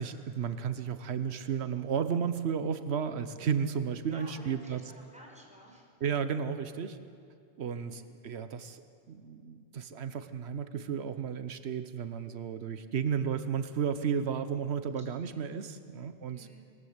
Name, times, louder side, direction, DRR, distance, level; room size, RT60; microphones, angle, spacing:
voice 1, 0.0-4.8 6.0-7.0 7.6-8.8 9.1-16.7, right 7 dB, 90° right, 11 dB, 1.1 m, -33 dB
voice 2, 4.1-5.9 7.7-8.1 13.1-13.3 15.3-15.4 16.3-16.6, equal, 5° right, -1 dB, 5.1 m, -53 dB
21.0 x 20.0 x 8.0 m, 2.5 s
omnidirectional pair, 1.1 m